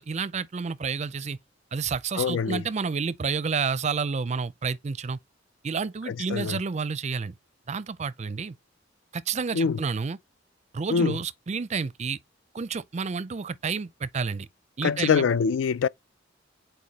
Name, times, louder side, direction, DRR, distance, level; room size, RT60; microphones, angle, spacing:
voice 1, 0.0-1.4 1.7-5.2 5.6-7.3 7.7-8.6 9.1-10.2 10.7-12.2 12.5-14.5 14.8-15.3, right 5 dB, 35° right, 0.5 m, -30 dB
voice 2, 2.2-2.6 6.1-6.6 9.5-9.8 10.9-11.2 14.8-15.9, left 6 dB, 70° left, 0.4 m, -24 dB
8.4 x 4.6 x 2.8 m
head